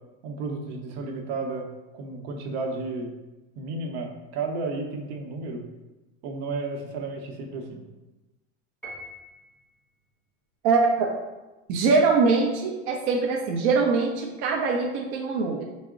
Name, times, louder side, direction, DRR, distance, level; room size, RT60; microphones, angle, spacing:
voice 1, 0.2-1.7 1.9-3.1 3.6-5.6 6.2-7.8, right 3 dB, 65° right, 3 dB, 0.8 m, -32 dB
Piano, 8.8-9.7, equal, 5° left, 0.7 m, -42 dB
voice 2, 10.6-11.1 11.7-15.6, right 4 dB, 45° right, 0 dB, 0.4 m, -23 dB
4.5 x 2.0 x 3.6 m, 1.1 s
supercardioid pair, 150°, 35 cm